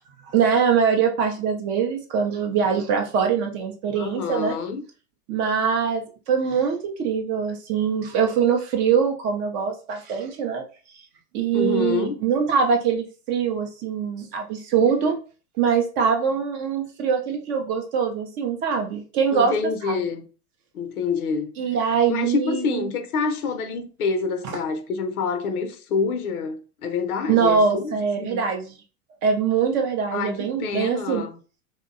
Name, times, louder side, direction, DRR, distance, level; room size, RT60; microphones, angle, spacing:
voice 1, 0.3-4.6 5.3-10.6 11.3-15.2 15.6-19.5 19.8-20.0 21.6-22.8 27.3-28.8 29.2-31.3, right 6 dB, 30° right, 0.4 m, -23 dB
voice 2, 4.0-4.8 11.5-12.2 19.3-20.2 20.7-21.5 22.1-28.4 30.1-31.4, left 5 dB, 80° left, 0.6 m, -27 dB
2.7 x 2.1 x 2.4 m
hypercardioid pair, 105°, 43 cm